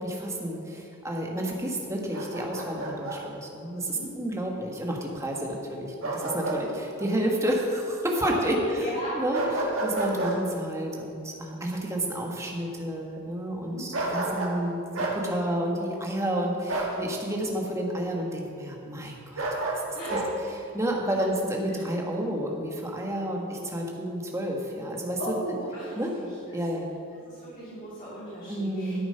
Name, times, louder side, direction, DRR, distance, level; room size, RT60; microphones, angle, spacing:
voice 1, 0.0-8.9 9.1-14.8 15.1-19.6 20.1-20.2 20.5-25.2 26.0-26.1 26.5-27.0 28.5-29.1, right 1 dB, 15° right, 0 dB, 1.3 m, -30 dB
Bark, 2.1-3.2 6.0-6.6 7.0-7.1 9.3-10.4 13.9-14.6 14.9-15.2 16.7-17.0 19.4-20.3, right 2 dB, 70° right, 1.9 m, -30 dB
voice 2, 8.2-9.2 10.1-10.2 13.6-13.9 19.9-20.5 21.1-21.2 21.7-21.9 25.2-26.3 27.3-29.1, equal, 40° left, -10 dB, 2.8 m, -37 dB
13.0 x 7.1 x 5.6 m, 2.7 s
head